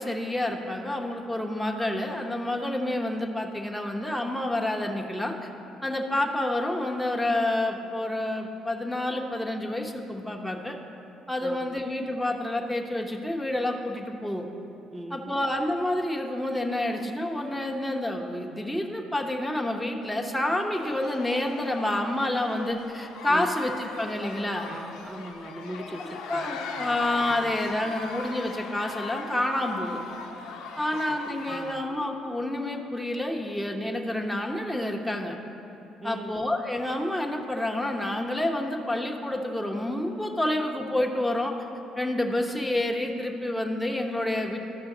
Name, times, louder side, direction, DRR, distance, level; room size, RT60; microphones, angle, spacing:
voice 1, 0.0-5.5 5.8-10.8 11.3-14.5 15.1-24.7 26.0-30.0 30.8-35.4 36.0-41.5 42.0-44.6, left 1 dB, 5° left, 1 dB, 1.0 m, -29 dB
voice 2, 11.4-11.8 14.9-15.3 23.3-23.5 24.7-27.0 27.3-27.6 30.9-31.0 31.5-31.8 36.0-36.4, right 1 dB, 30° right, 8 dB, 0.7 m, -40 dB
sound 1, 20.7-31.7, left 4 dB, 75° left, 0.7 m, -39 dB
13.0 x 5.6 x 3.9 m, 2.9 s
hypercardioid pair, 55°, 0 cm